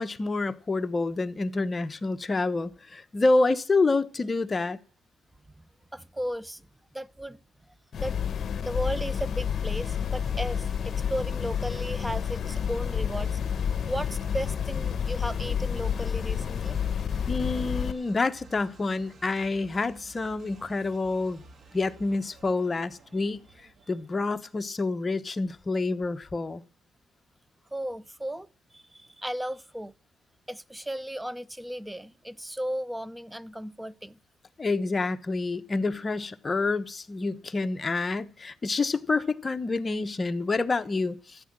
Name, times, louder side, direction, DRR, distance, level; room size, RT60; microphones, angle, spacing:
voice 1, 0.0-4.8 17.3-21.4 21.7-23.4 23.9-26.6 34.6-41.4, left 3 dB, 30° left, 1.0 m, -28 dB
voice 2, 5.9-6.7 6.9-7.4 7.7-7.8 8.0-8.2 8.6-13.4 13.9-16.8 27.7-29.9 30.5-34.2, equal, 5° right, 0.6 m, -35 dB
sound 1, 7.9-17.9, left 8 dB, 50° left, 1.1 m, -29 dB
sound 2, 9.8-24.5, right 3 dB, 50° right, 2.7 m, -53 dB
14.0 x 9.6 x 7.5 m
cardioid pair, 90°, 0 cm